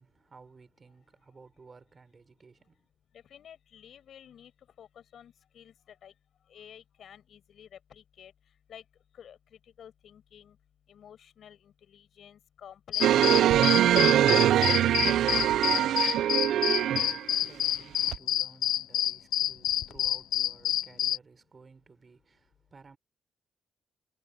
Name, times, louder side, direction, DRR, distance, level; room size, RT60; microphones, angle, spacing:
voice 1, 0.0-2.9 15.3-23.0, right 4 dB, 35° right, 5.1 m, -56 dB
voice 2, 3.3-4.5 4.8-5.7 6.0-6.1 6.5-8.3 8.7-8.8 9.1-9.4 9.8-10.6 10.9-14.1, left 9 dB, 65° left, 6.4 m, -51 dB
sound 1, 12.9-21.2, left 12 dB, 80° left, 0.3 m, -28 dB
sound 2, 13.0-17.3 18.1-18.2, right 12 dB, 75° right, 0.5 m, -23 dB
cardioid pair, 90°, 0 cm